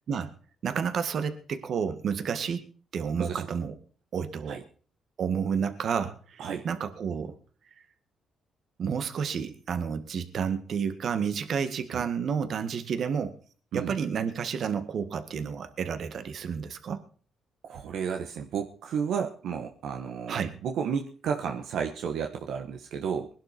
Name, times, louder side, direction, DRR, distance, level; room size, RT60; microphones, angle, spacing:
voice 1, 0.6-3.8 4.1-4.6 5.2-7.4 8.8-13.4 13.7-17.0 20.3-20.5, right 6 dB, 60° right, 10 dB, 1.8 m, -30 dB
voice 2, 17.6-23.3, right 7 dB, 75° right, 3 dB, 1.4 m, -32 dB
20.5 x 11.5 x 4.5 m, 0.41 s
cardioid pair, 90°, 0 cm